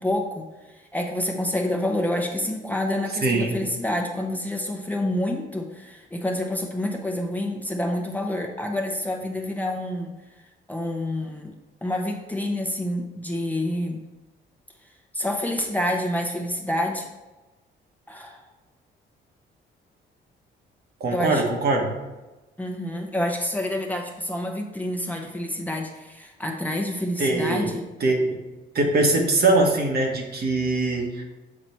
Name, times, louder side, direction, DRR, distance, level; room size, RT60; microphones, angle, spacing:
voice 1, 0.0-10.1 10.7-11.5 11.8-14.1 15.1-17.1 18.1-18.5 21.1-21.4 22.6-27.8, left 1 dB, 10° left, 1 dB, 0.9 m, -28 dB
voice 2, 3.2-3.6 21.0-21.9 27.2-27.7 28.0-28.4 28.7-31.2, right 2 dB, 50° right, 1 dB, 1.4 m, -22 dB
7.6 x 4.0 x 4.5 m, 1.1 s
cardioid pair, 90°, 20 cm